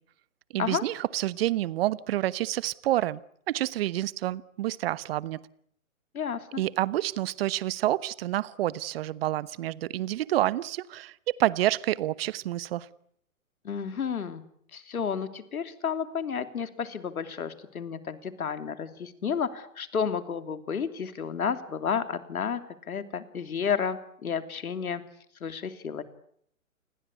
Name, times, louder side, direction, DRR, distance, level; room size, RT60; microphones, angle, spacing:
voice 1, 0.5-3.2 3.5-5.4 6.6-12.9, right 14 dB, 45° right, 19 dB, 1.1 m, -28 dB
voice 2, 6.1-6.6 13.6-14.4 14.7-22.6 22.9-25.0 25.4-26.0, left 7 dB, 75° left, 10 dB, 3.1 m, -31 dB
29.0 x 21.0 x 8.4 m, 0.68 s
hypercardioid pair, 135°, 43 cm